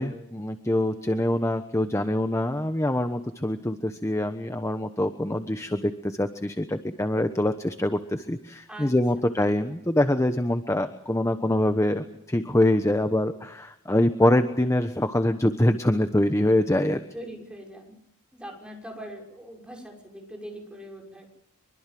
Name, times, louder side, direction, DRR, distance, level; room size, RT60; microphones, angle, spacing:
voice 1, 0.0-17.0, left 1 dB, 15° left, 9 dB, 1.1 m, -24 dB
voice 2, 17.1-17.9 18.3-21.3, equal, 5° right, 1 dB, 6.2 m, -41 dB
25.0 x 23.5 x 7.7 m, 0.74 s
head